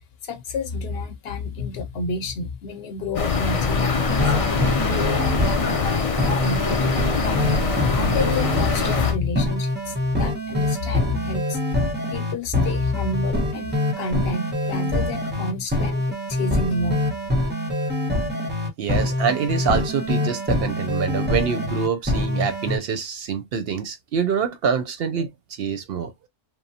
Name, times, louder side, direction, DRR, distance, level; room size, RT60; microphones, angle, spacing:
voice 1, 0.2-4.3 4.9-7.4 7.9-11.8 12.1-17.0, left 3 dB, 65° left, 0.8 m, -30 dB
sound 1, 3.2-9.1, left 4 dB, 50° left, 0.4 m, -23 dB
sound 2, 4.1-22.8, left 1 dB, 10° right, 0.6 m, -25 dB
voice 2, 18.8-25.3 25.6-26.1, right 6 dB, 65° right, 0.7 m, -25 dB
3.0 x 2.0 x 2.7 m
omnidirectional pair, 1.2 m